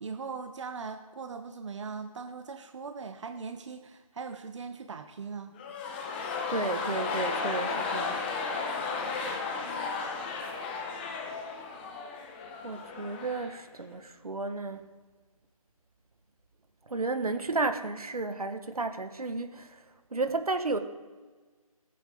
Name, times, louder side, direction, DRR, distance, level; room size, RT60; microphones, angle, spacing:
voice 1, 0.0-5.6, right 5 dB, 55° right, 0.9 m, -40 dB
sound 1, 5.5-13.6 13.9-14.0, left 4 dB, 15° left, 1.0 m, -34 dB
voice 2, 6.5-8.2 12.6-14.9 16.9-19.8 20.1-20.8, right 3 dB, 85° right, 1.6 m, -32 dB
18.0 x 8.5 x 3.8 m
figure-of-eight pair, 160°, 19 cm